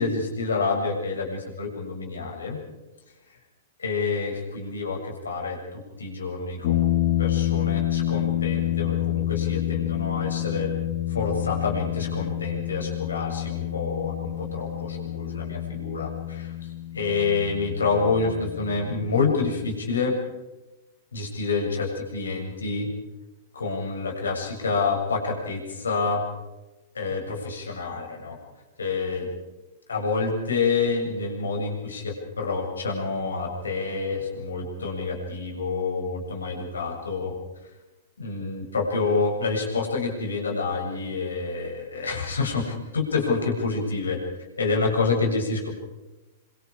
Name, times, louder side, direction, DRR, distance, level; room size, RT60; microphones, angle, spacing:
voice 1, 0.0-2.6 3.8-10.7 11.1-16.5 16.9-20.2 21.1-22.9 23.5-26.2 26.9-28.4 28.8-29.3 29.9-37.3 38.2-44.2 44.6-45.7, left 4 dB, 85° left, 0 dB, 7.1 m, -28 dB
sound 1, 6.6-19.7, left 12 dB, 55° left, 1.3 m, -28 dB
25.5 x 25.0 x 4.9 m, 1.1 s
hypercardioid pair, 110°, 0 cm